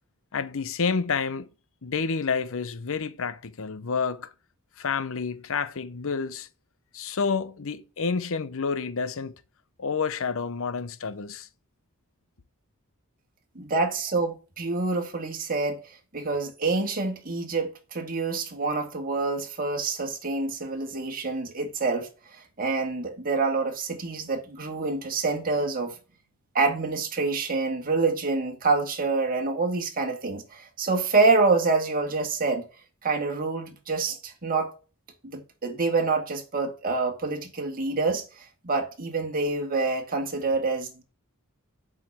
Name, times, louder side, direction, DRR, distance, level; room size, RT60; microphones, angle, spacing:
voice 1, 0.3-1.5 1.8-4.3 4.8-6.5 6.9-9.3 9.8-11.5, left 5 dB, 65° left, 0.7 m, -29 dB
voice 2, 13.6-15.8 16.1-22.1 22.6-25.9 26.5-32.6 33.0-34.7 35.2-38.2 38.6-41.0, right 3 dB, 40° right, 2.0 m, -26 dB
7.6 x 5.1 x 7.3 m
head